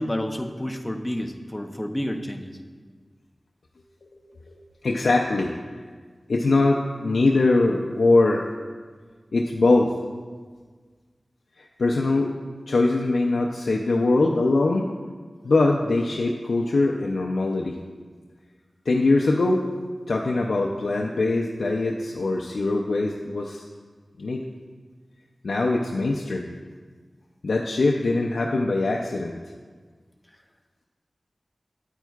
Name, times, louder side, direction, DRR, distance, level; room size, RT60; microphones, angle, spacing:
voice 1, 0.0-2.5, equal, 10° left, 4 dB, 0.6 m, -29 dB
voice 2, 4.8-5.5 6.3-8.5 9.3-9.9 11.8-12.3 12.7-14.9 15.4-17.8 18.9-19.6 20.1-23.6 24.2-24.4 25.4-26.5 27.4-29.4, left 2 dB, 85° left, 0 dB, 0.4 m, -22 dB
8.9 x 8.9 x 2.3 m, 1.5 s
wide cardioid pair, 60°, 0 cm